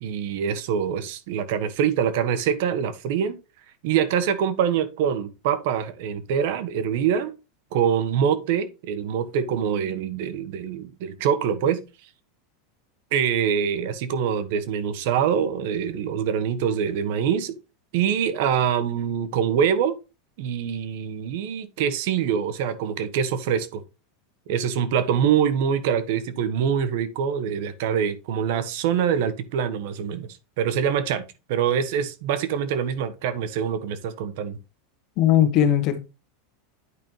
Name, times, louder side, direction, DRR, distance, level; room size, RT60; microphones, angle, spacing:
voice 1, 0.0-3.4 3.8-7.3 7.7-11.8 13.1-17.5 17.9-20.0 20.4-23.8 24.5-30.3 30.6-31.2 31.5-34.6, right 8 dB, 65° right, 1.3 m, -24 dB
voice 2, 35.2-36.0, left 10 dB, 45° left, 1.4 m, -18 dB
9.9 x 5.3 x 3.2 m
supercardioid pair, 135°, 0 cm